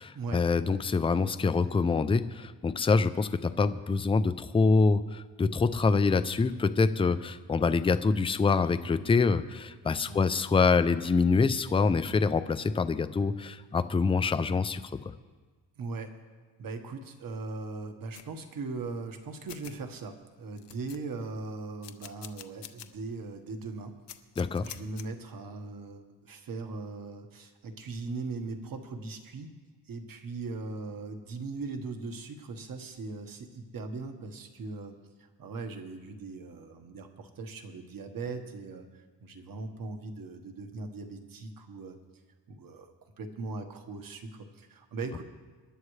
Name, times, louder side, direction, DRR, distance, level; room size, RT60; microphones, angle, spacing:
voice 1, 0.0-14.8 24.4-24.6, left 4 dB, 15° left, 12 dB, 0.4 m, -25 dB
voice 2, 10.1-10.4 15.8-16.1 16.6-23.9 24.6-29.5 29.9-35.0 35.4-38.8 39.2-42.0 42.5-42.9 43.2-45.2, right 3 dB, 50° right, 5 dB, 1.5 m, -39 dB
sound 1, 18.1-18.3 19.1-19.2 19.5-19.7 20.2-20.3 20.6-21.3 21.8-22.9 23.3-23.4 24.1-25.0, left 11 dB, 65° left, 0.9 m, -46 dB
26.5 x 11.0 x 3.2 m, 1.4 s
cardioid pair, 140°, 44 cm